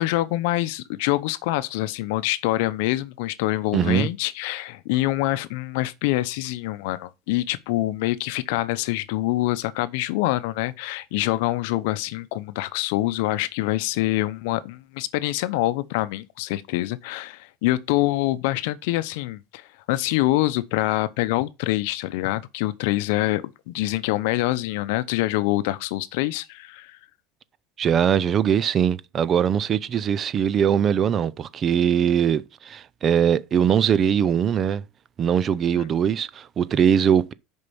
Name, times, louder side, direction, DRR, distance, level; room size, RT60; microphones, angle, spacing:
voice 1, 0.0-27.0 35.8-35.9, left 17 dB, 75° left, 0.7 m, -25 dB
voice 2, 3.7-4.1 27.8-34.8 35.2-37.3, right 8 dB, 30° right, 0.5 m, -21 dB
6.8 x 5.4 x 7.0 m
supercardioid pair, 140°, 0 cm